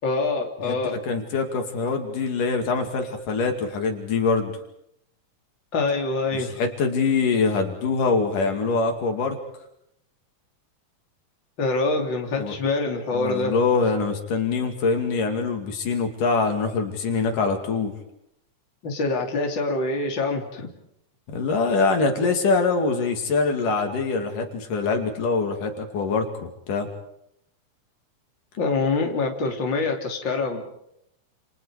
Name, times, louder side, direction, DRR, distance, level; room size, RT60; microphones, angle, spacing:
voice 1, 0.0-1.0 5.7-6.6 11.6-13.6 18.8-20.7 28.6-30.6, left 3 dB, 35° left, 2 dB, 3.7 m, -25 dB
voice 2, 0.7-4.6 6.3-9.4 12.4-12.6 13.1-17.9 21.3-26.9, left 4 dB, 80° left, 4 dB, 4.0 m, -24 dB
29.0 x 29.0 x 5.0 m, 0.78 s
omnidirectional pair, 3.7 m